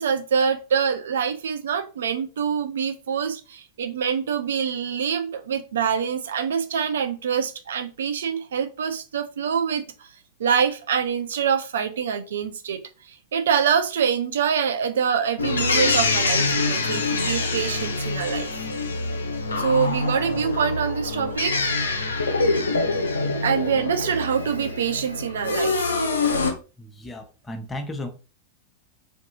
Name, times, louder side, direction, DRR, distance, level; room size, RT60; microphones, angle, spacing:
voice 1, 0.0-9.8 10.4-12.8 13.1-18.5 19.6-21.7 23.4-25.9, right 7 dB, 65° right, 0.3 m, -25 dB
sound 1, 15.4-26.5, left 3 dB, 75° left, 0.5 m, -25 dB
voice 2, 26.8-28.1, left 1 dB, 15° left, 0.6 m, -34 dB
3.4 x 2.6 x 2.7 m
figure-of-eight pair, 90°, 0 cm